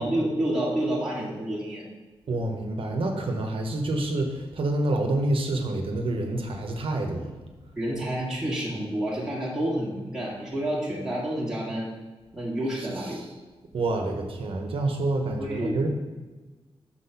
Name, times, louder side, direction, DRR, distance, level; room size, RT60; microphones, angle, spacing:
voice 1, 0.0-1.8 7.8-11.9 12.3-13.2 15.4-15.8, right 1 dB, 5° right, -7 dB, 1.4 m, -29 dB
voice 2, 2.3-7.4 13.2-13.3 13.7-15.9, right 2 dB, 65° right, 3 dB, 0.8 m, -27 dB
6.0 x 4.1 x 5.6 m, 1.3 s
wide cardioid pair, 150°, 10 cm